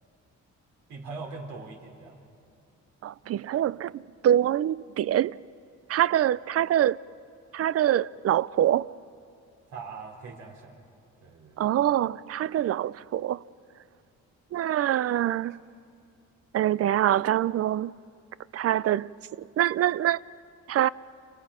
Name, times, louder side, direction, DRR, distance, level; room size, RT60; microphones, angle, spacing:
voice 1, 0.9-2.2 9.7-10.8 11.2-11.7, right 4 dB, 80° right, 3.8 m, -41 dB
voice 2, 3.0-5.4 5.9-7.0 7.5-8.9 11.6-13.4 14.5-15.6 16.5-17.9 18.5-19.1 19.6-20.2 20.7-20.9, right 11 dB, 50° right, 0.5 m, -25 dB
29.5 x 29.0 x 5.1 m
cardioid pair, 90°, 30 cm